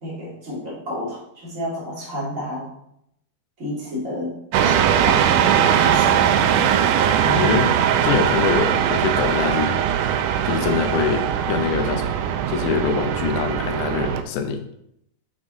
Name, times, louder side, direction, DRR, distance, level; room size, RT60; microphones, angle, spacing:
voice 1, 0.0-2.7 3.6-4.3 4.6-5.2 5.5-6.4 7.2-7.6, equal, 25° right, -5 dB, 2.2 m, -30 dB
sound 1, 4.5-14.2, right 9 dB, 85° right, 1.8 m, -20 dB
voice 2, 7.3-9.8 10.4-12.2 12.5-14.6, left 6 dB, 75° left, 5 dB, 1.8 m, -24 dB
7.2 x 6.0 x 3.7 m, 0.75 s
omnidirectional pair, 4.3 m